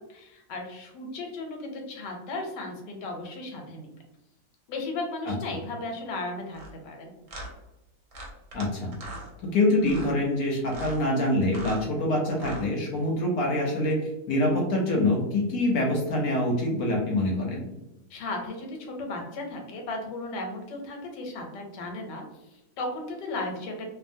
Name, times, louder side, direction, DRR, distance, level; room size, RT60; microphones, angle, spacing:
voice 1, 0.1-3.9 4.7-7.1 18.1-22.2 22.5-23.9, left 2 dB, 85° left, 2 dB, 1.3 m, -35 dB
sound 1, 6.5-6.7 7.3-7.5 8.1-8.7 8.9-9.3 9.8-10.1 10.6-11.0 11.4-11.8 12.3-12.7, equal, 60° right, 0.9 m, -40 dB
voice 2, 8.5-8.9 9.4-14.0 14.3-17.6, left 1 dB, 70° left, -1 dB, 1.0 m, -25 dB
2.7 x 2.5 x 2.6 m, 0.93 s
omnidirectional pair, 1.9 m